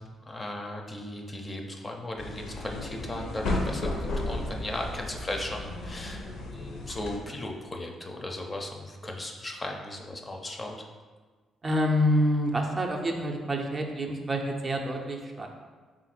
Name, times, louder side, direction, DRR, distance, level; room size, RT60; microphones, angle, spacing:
voice 1, 0.0-10.8, left 1 dB, 25° left, 1 dB, 0.5 m, -37 dB
sound 1, 2.2-7.2, left 2 dB, 80° left, 0.6 m, -34 dB
voice 2, 11.6-15.5, equal, 30° right, 2 dB, 0.4 m, -27 dB
3.5 x 2.4 x 4.2 m, 1.4 s
cardioid pair, 90°, 0 cm